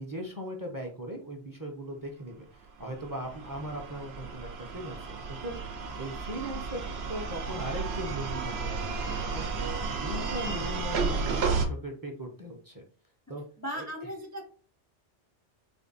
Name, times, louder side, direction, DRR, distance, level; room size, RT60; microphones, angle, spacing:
voice 1, 0.0-5.6 6.0-6.8 7.1-9.5 9.9-12.8 13.3-13.4 13.7-13.9, right 1 dB, 20° right, 2 dB, 0.7 m, -39 dB
sound 1, 2.8-11.7, right 4 dB, 65° right, 0.9 m, -33 dB
voice 2, 13.6-14.5, equal, 20° left, 1 dB, 0.4 m, -37 dB
4.3 x 2.2 x 3.9 m, 0.38 s
omnidirectional pair, 1.2 m